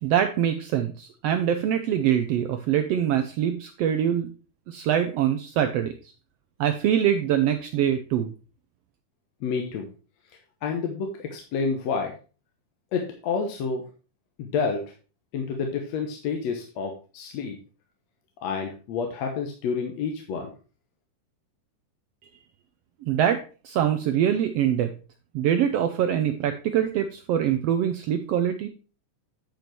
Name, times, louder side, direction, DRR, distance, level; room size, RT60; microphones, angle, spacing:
voice 1, 0.0-4.3 4.7-5.9 6.6-8.3 23.1-24.9 25.3-28.7, right 10 dB, 80° right, 8 dB, 1.4 m, -24 dB
voice 2, 9.4-9.9 10.6-12.1 12.9-13.8 14.4-14.8 15.3-17.6 18.4-20.5, left 5 dB, 70° left, 3 dB, 2.1 m, -29 dB
9.4 x 5.3 x 4.5 m, 0.35 s
omnidirectional pair, 3.5 m